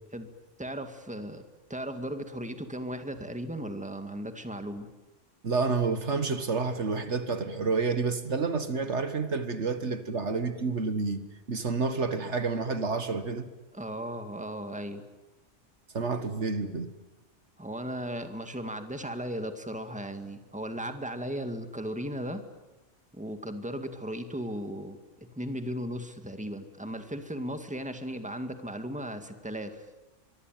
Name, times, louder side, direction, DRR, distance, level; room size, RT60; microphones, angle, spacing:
voice 1, 0.6-1.4 1.7-4.9 13.7-15.0 17.6-22.4 23.1-29.9, equal, 5° right, 2.0 m, -36 dB
voice 2, 5.4-11.2 11.5-13.5 15.9-16.9, right 4 dB, 65° right, 1.9 m, -29 dB
24.0 x 24.0 x 9.2 m
omnidirectional pair, 1.3 m